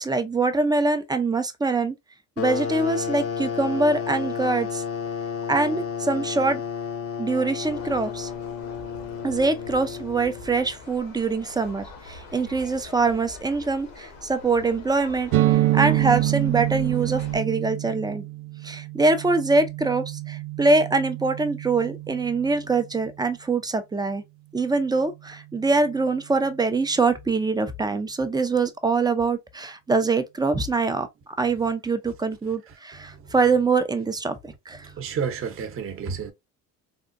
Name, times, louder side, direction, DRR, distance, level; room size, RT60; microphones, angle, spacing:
voice 1, 0.0-2.0 2.4-4.8 5.5-6.6 7.2-8.3 9.2-18.2 18.6-24.2 24.5-34.4 34.7-34.9, right 3 dB, 10° right, 0.4 m, -24 dB
sound 1, 2.4-10.8, left 7 dB, 45° left, 0.6 m, -31 dB
sound 2, 7.6-17.4, left 3 dB, 80° left, 1.1 m, -44 dB
sound 3, 15.3-22.9, right 16 dB, 85° right, 0.5 m, -27 dB
voice 2, 33.0-33.3 34.8-36.3, right 6 dB, 40° right, 0.8 m, -31 dB
3.6 x 2.2 x 2.5 m
supercardioid pair, 100°, 33 cm